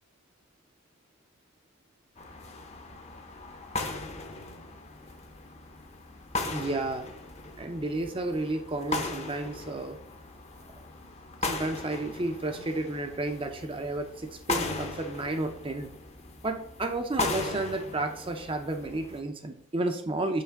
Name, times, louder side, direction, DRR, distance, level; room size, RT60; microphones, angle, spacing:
sound 1, 2.2-19.2, left 3 dB, 30° left, 0.7 m, -38 dB
voice 1, 6.5-7.1 7.6-10.0 11.4-15.9 16.4-20.4, right 2 dB, 25° right, 6 dB, 0.5 m, -32 dB
5.7 x 3.4 x 5.8 m, 0.65 s
head